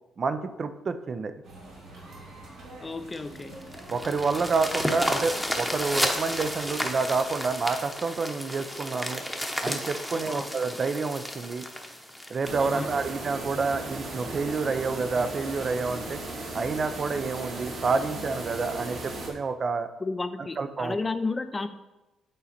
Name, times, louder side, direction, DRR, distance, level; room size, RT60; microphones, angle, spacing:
voice 1, 0.2-1.3 3.9-9.2 9.6-11.6 12.3-16.2 16.5-19.9 20.4-21.0, right 4 dB, 45° right, 10 dB, 0.5 m, -28 dB
sound 1, 1.4-7.9, right 2 dB, 80° right, 2.6 m, -47 dB
voice 2, 2.8-3.6 10.1-10.5 12.6-12.9 20.0-21.7, left 3 dB, 25° left, 10 dB, 0.5 m, -32 dB
sound 2, 3.1-13.6 14.2-14.3 14.7-14.8 15.2-15.3 15.6-15.9 16.8-16.9, equal, ahead, 0.9 m, -32 dB
sound 3, 12.4-19.3, right 2 dB, 60° right, 1.9 m, -36 dB
8.5 x 4.0 x 4.2 m, 1.0 s
cardioid pair, 90°, 0 cm